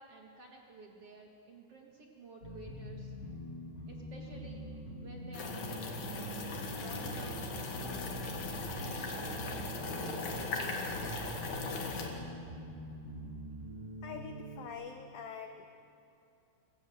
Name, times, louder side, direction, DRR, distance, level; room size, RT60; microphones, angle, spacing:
voice 1, 0.0-3.1 3.9-4.7 5.0-6.1 6.7-7.4 7.7-8.2 8.7-9.3 9.9-11.0, right 2 dB, 60° right, 1 dB, 1.5 m, -52 dB
sound 1, 2.4-14.7, equal, 15° left, 7.1 m, -44 dB
sound 2, 5.3-12.1, left 2 dB, 50° left, 2.8 m, -39 dB
voice 2, 14.0-15.6, left 7 dB, 85° left, 6 dB, 2.0 m, -45 dB
25.0 x 18.0 x 8.0 m, 2.7 s
omnidirectional pair, 5.6 m